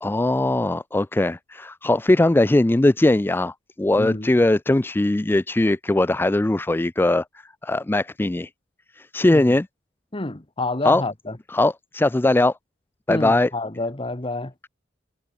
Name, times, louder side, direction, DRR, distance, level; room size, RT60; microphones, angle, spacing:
voice 1, 0.0-7.2 7.6-8.5 8.9-9.7 10.8-11.0 11.5-12.6 13.1-13.5, left 2 dB, 10° left, 0.4 m, -20 dB
voice 2, 4.0-4.3 9.3-9.5 10.1-11.4 13.1-14.5, left 2 dB, 30° left, 1.5 m, -28 dB
head